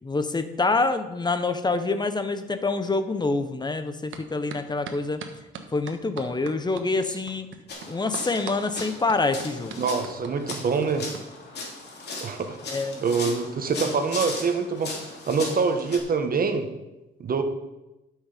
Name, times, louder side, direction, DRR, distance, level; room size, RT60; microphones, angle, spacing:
voice 1, 0.0-5.2 5.7-7.5 7.9-9.8 12.7-13.0, left 3 dB, 20° left, 10 dB, 1.0 m, -26 dB
sound 1, 4.1-4.2 4.5-11.2, right 7 dB, 80° right, 1.2 m, -39 dB
sound 2, 7.7-16.0, left 3 dB, 55° left, 3.0 m, -38 dB
voice 2, 9.8-11.1 12.2-12.6 13.0-16.7 17.2-17.4, right 5 dB, 45° right, 6 dB, 1.5 m, -25 dB
12.0 x 6.6 x 5.1 m, 0.99 s
cardioid pair, 90°, 20 cm